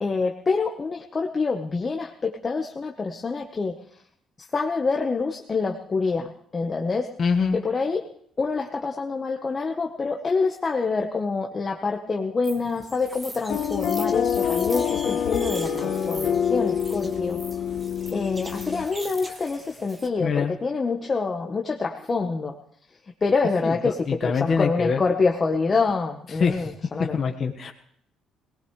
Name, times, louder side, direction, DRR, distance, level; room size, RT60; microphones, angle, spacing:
voice 1, 0.0-3.8 4.5-7.1 7.5-8.0 8.4-17.4 18.1-22.5 23.2-27.2, left 4 dB, 30° left, 1 dB, 1.2 m, -26 dB
voice 2, 7.2-7.6 20.2-20.5 23.6-25.0 26.4-26.7 27.0-27.7, left 5 dB, 45° left, 3 dB, 1.5 m, -24 dB
sound 1, 12.4-20.1, right 2 dB, 20° right, 1.4 m, -41 dB
sound 2, 13.5-18.8, left 8 dB, 70° left, 1.3 m, -26 dB
21.5 x 19.0 x 3.3 m, 0.67 s
cardioid pair, 110°, 0 cm